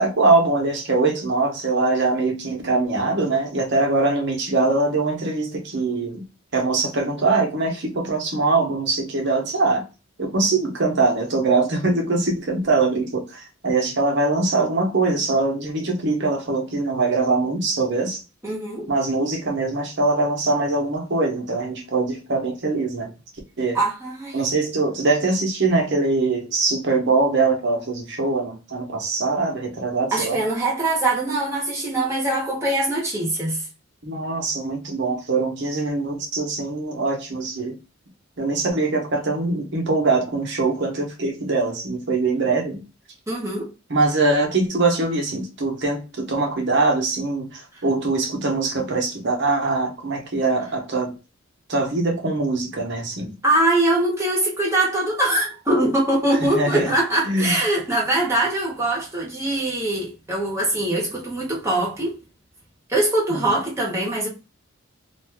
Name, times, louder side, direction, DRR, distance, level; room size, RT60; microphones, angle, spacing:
voice 1, 0.0-6.2 6.5-9.8 10.2-18.2 18.9-23.1 23.6-23.8 24.3-30.4 34.0-37.8 38.4-42.8 43.9-51.1 51.7-53.3 56.4-56.9 57.2-57.6 63.3-63.5, right 3 dB, 60° right, 0.8 m, -22 dB
voice 2, 18.4-18.9 23.7-24.4 30.1-33.6 43.3-43.7 53.4-62.2 62.9-64.3, right 1 dB, 15° right, 1.0 m, -22 dB
2.6 x 2.3 x 3.3 m
head